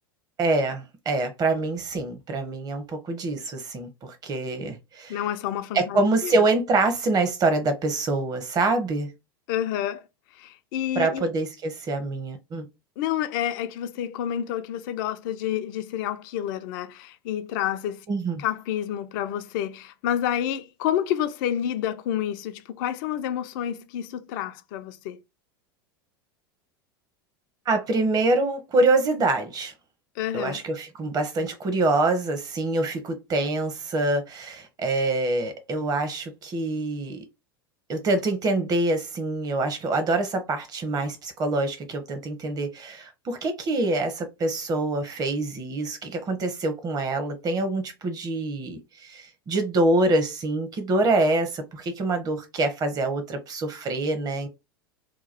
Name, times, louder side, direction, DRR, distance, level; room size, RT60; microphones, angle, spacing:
voice 1, 0.4-5.2 5.7-9.1 10.9-12.7 18.1-18.4 27.7-29.7 30.3-37.2 37.9-54.5, right 2 dB, 30° right, 1.0 m, -25 dB
voice 2, 5.1-6.4 9.5-10.0 10.4-11.3 13.0-18.0 18.4-25.2 30.2-30.6, left 10 dB, 60° left, 0.5 m, -29 dB
3.0 x 2.3 x 4.0 m
hypercardioid pair, 90°, 12 cm